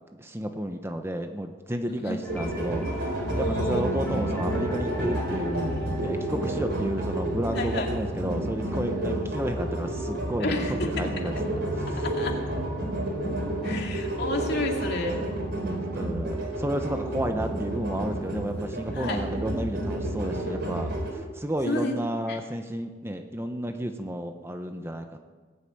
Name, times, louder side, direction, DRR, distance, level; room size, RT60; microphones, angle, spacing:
voice 1, 0.2-11.6 11.9-12.1 13.7-13.9 15.6-25.2, right 1 dB, 15° right, 6 dB, 0.9 m, -32 dB
sound 1, 2.2-16.2, equal, 10° left, 2.9 m, -42 dB
sound 2, 2.3-21.1, right 1 dB, 65° right, 4.6 m, -30 dB
voice 2, 3.3-3.8 7.5-7.9 10.4-11.1 12.0-12.4 13.6-15.1 18.9-19.2 21.6-22.0 22.3-22.4, left 2 dB, 60° left, 1 dB, 2.5 m, -30 dB
20.0 x 8.1 x 8.9 m, 1.4 s
head